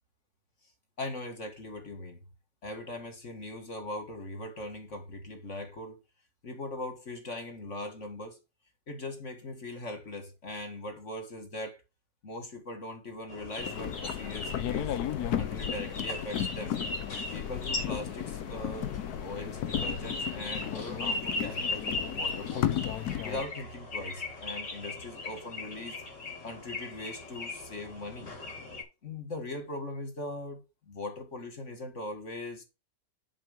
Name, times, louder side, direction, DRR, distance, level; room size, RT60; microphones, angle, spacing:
voice 1, 1.0-2.2 2.6-6.0 6.4-8.4 8.9-11.8 12.2-15.0 15.4-16.8 17.3-18.9 19.2-22.8 23.2-26.0 26.4-28.3 29.0-32.6, left 2 dB, 45° left, 2.1 m, -40 dB
sound 1, 13.3-28.8, left 2 dB, 80° left, 4.0 m, -39 dB
sound 2, 13.6-23.4, left 10 dB, 65° left, 1.3 m, -34 dB
7.6 x 4.7 x 6.6 m
omnidirectional pair, 1.9 m